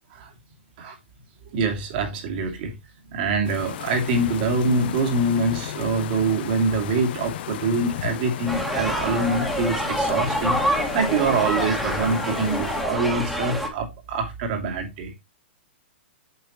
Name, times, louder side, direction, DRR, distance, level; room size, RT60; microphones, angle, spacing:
voice 1, 1.5-2.7 3.1-15.1, right 3 dB, 50° right, 2.7 m, -25 dB
sound 1, 3.4-12.8, left 12 dB, 55° left, 0.7 m, -35 dB
sound 2, 8.5-13.7, equal, ahead, 1.9 m, -26 dB
8.6 x 5.8 x 3.0 m
hypercardioid pair, 130°, 6 cm